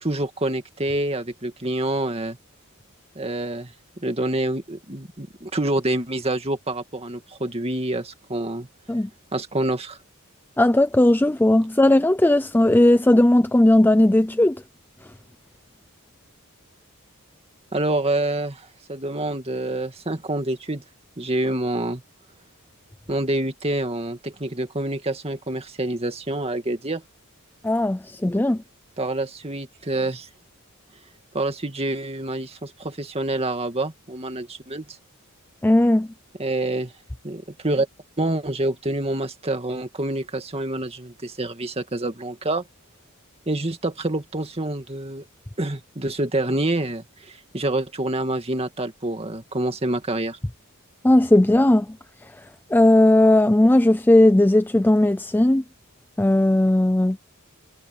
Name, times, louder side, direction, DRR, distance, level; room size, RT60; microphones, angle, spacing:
voice 1, 0.0-2.4 3.2-8.7 9.3-10.0 17.7-20.8 21.2-22.0 23.1-27.0 29.0-30.3 31.3-34.9 36.4-36.9 37.2-37.9 38.2-42.6 43.5-45.3 45.6-50.4, right 1 dB, 25° right, 2.2 m, -27 dB
voice 2, 10.6-14.6 27.6-28.6 35.6-36.1 51.0-51.9 52.7-55.6 56.2-57.2, left 1 dB, 10° left, 0.4 m, -17 dB
head